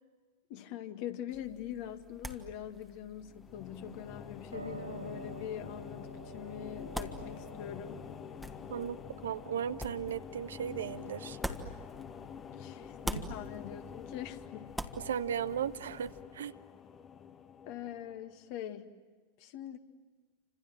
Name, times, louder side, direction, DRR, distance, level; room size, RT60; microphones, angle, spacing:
voice 1, 0.5-8.0 12.4-14.7 17.7-18.9 19.4-19.8, left 10 dB, 45° left, 8 dB, 2.0 m, -43 dB
Lemon Catch, 1.3-12.5 12.8-16.2, equal, ahead, 1.8 m, -46 dB
sound 1, 3.2-18.5, left 8 dB, 25° left, 1.2 m, -48 dB
Piano, 4.5-14.5, right 1 dB, 90° right, 4.5 m, -50 dB
voice 2, 9.2-11.4 13.1-13.2 15.0-16.5, right 8 dB, 65° right, 13 dB, 0.9 m, -36 dB
29.0 x 26.5 x 7.5 m, 1.4 s
figure-of-eight pair, 90°, 0 cm